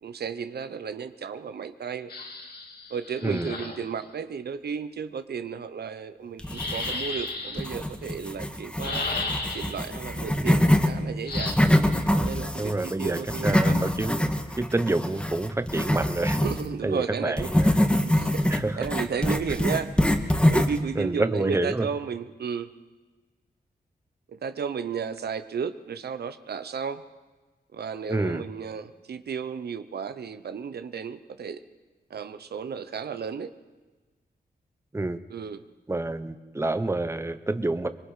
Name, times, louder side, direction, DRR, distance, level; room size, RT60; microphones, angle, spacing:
voice 1, 0.0-2.1 2.9-9.1 9.5-11.5 12.2-13.9 16.4-17.5 18.1-18.4 18.8-19.9 20.5-22.7 24.3-27.0 27.7-31.6 32.1-33.5 35.3-35.6, right 6 dB, 80° right, 11 dB, 0.9 m, -33 dB
sound 1, 2.1-3.8 6.4-7.7 8.8-9.9 11.2-11.5, left 3 dB, 70° left, 3.0 m, -33 dB
voice 2, 3.2-3.6 12.6-14.2 14.6-16.4 16.8-17.9 18.5-18.9 20.9-21.9 28.1-28.4 34.9-35.2 35.9-37.9, right 2 dB, 15° right, 11 dB, 1.0 m, -28 dB
sound 2, 6.4-7.2 7.6-10.9 11.3-16.6 17.4-20.8, left 1 dB, 5° left, 1.6 m, -24 dB
24.5 x 22.0 x 5.8 m, 1.3 s
wide cardioid pair, 95°, 16 cm